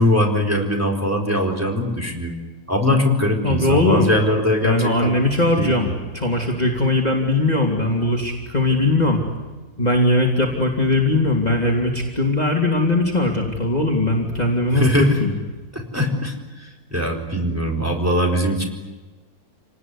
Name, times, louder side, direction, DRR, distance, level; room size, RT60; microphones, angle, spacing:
voice 1, 0.0-2.3 2.7-5.1 5.6-5.9 14.7-15.2 15.7-18.6, left 1 dB, 10° right, 1 dB, 4.3 m, -21 dB
voice 2, 3.4-4.1 4.6-5.9 6.1-9.2 9.8-15.3, left 2 dB, 25° left, 0 dB, 3.0 m, -20 dB
28.0 x 19.5 x 10.0 m, 1.2 s
omnidirectional pair, 1.8 m